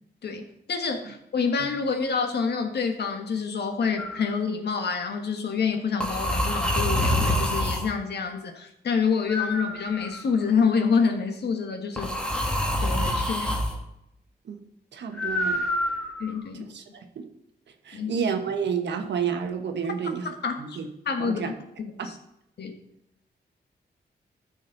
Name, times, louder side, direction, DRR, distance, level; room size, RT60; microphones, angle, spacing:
voice 1, 0.2-12.1 12.8-13.6 16.2-16.7 17.9-18.2 20.2-20.8 21.0-21.5 21.8-22.1 22.6-22.8, left 5 dB, 70° left, 5 dB, 1.4 m, -27 dB
sound 1, 4.0-4.3 6.0-7.9 9.3-10.4 12.0-13.7 15.2-16.4, left 1 dB, 5° left, 1.4 m, -26 dB
voice 2, 14.9-15.6 16.7-16.8 17.1-17.3 17.8-20.9 21.2-21.5 22.0-22.1, right 6 dB, 85° right, 5 dB, 1.3 m, -30 dB
13.5 x 6.3 x 4.0 m, 0.81 s
wide cardioid pair, 120°, 18 cm